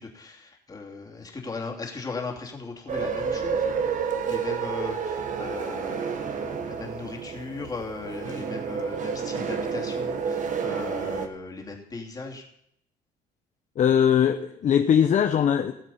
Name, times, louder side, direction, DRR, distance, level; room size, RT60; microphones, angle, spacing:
voice 1, 0.0-3.7 4.3-12.4, left 3 dB, 20° left, 0 dB, 2.8 m, -37 dB
sound 1, 2.9-11.3, right 6 dB, 50° right, 1.4 m, -30 dB
voice 2, 13.8-15.7, left 8 dB, 45° left, 7 dB, 0.7 m, -20 dB
18.0 x 7.3 x 5.6 m, 0.73 s
cardioid pair, 110°, 17 cm